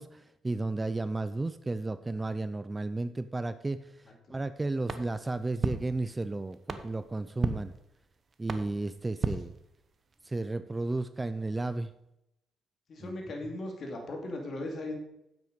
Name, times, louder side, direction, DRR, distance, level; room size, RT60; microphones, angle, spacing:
voice 1, 0.0-7.7 8.4-9.5 10.2-11.9 13.0-13.1, right 2 dB, 15° right, 12 dB, 0.4 m, -33 dB
sound 1, 4.9-10.2, right 4 dB, 40° right, 0.9 m, -37 dB
voice 2, 12.9-15.0, left 1 dB, 50° left, 2 dB, 2.4 m, -37 dB
9.3 x 7.9 x 5.2 m, 0.85 s
cardioid pair, 110°, 0 cm